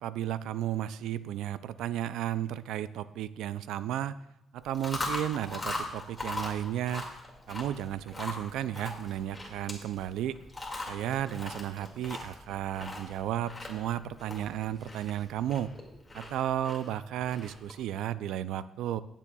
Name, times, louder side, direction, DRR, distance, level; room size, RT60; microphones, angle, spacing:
voice 1, 0.0-4.2 4.5-7.1 7.5-10.4 10.9-15.7 16.1-19.0, right 11 dB, 85° right, 15 dB, 0.3 m, -33 dB
Chewing mastication, 4.6-17.8, left 2 dB, 15° left, 2.1 m, -40 dB
18.5 x 7.3 x 2.3 m, 0.85 s
cardioid pair, 90°, 0 cm